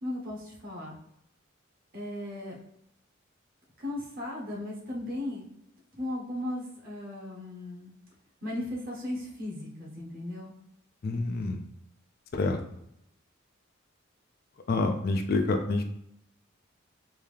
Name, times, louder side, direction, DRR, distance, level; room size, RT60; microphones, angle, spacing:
voice 1, 0.0-0.9 1.9-2.6 3.8-5.4 5.9-7.9 8.4-10.5, left 1 dB, 45° right, -3 dB, 1.0 m, -36 dB
voice 2, 11.0-11.6 12.3-12.6 14.7-15.9, left 3 dB, 45° left, 6 dB, 0.3 m, -27 dB
3.6 x 2.7 x 3.2 m, 0.76 s
head